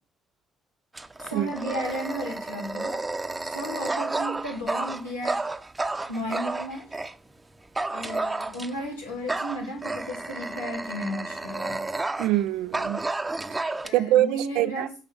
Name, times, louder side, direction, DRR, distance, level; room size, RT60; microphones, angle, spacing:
Dog, 0.9-7.2 7.8-8.9 9.3-12.4 12.7-13.9, right 2 dB, 20° right, 0.9 m, -31 dB
voice 1, 1.2-3.0 3.4-5.4 6.1-6.9 7.9-11.8 13.8-14.9, equal, 85° left, 3.0 m, -34 dB
voice 2, 12.2-13.0 13.5-14.9, right 14 dB, 65° right, 0.5 m, -24 dB
8.1 x 5.3 x 7.5 m
figure-of-eight pair, 45°, 0 cm